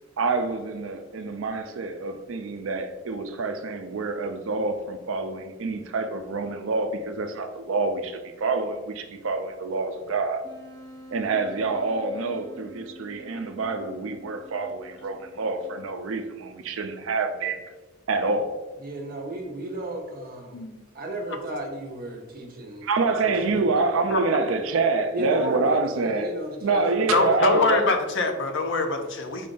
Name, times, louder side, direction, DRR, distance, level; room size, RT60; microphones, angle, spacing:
voice 1, 0.2-10.4 11.1-17.6 18.1-18.6 22.8-26.3 26.6-27.8, right 3 dB, 70° right, 0.5 m, -27 dB
Wind instrument woodwind instrument, 10.4-16.1, equal, 20° left, 0.9 m, -47 dB
voice 2, 18.8-20.6 20.9-22.9 23.2-23.6 25.1-27.3, right 1 dB, 45° right, 0.8 m, -33 dB
voice 3, 27.1-29.5, left 3 dB, 65° left, 0.5 m, -24 dB
4.5 x 2.5 x 3.7 m
head